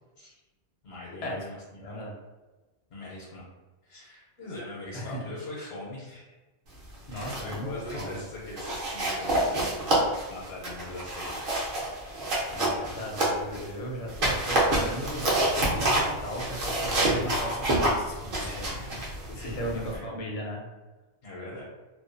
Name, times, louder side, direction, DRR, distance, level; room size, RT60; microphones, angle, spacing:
voice 1, 0.8-2.1 2.9-3.5 3.8-6.3 7.1-9.5 9.8-11.4 18.4-19.0 19.3-20.3 21.2-21.6, left 2 dB, 75° left, -6 dB, 0.9 m, -41 dB
voice 2, 1.8-2.1 4.9-5.2 7.1-8.2 12.5-18.7 19.4-20.6, equal, 45° left, -2 dB, 0.5 m, -36 dB
sound 1, 6.9-7.6 7.9-8.2 8.6-13.7 14.1-20.0, right 1 dB, 55° right, 0.8 m, -28 dB
2.4 x 2.2 x 2.5 m, 1.2 s
omnidirectional pair, 1.2 m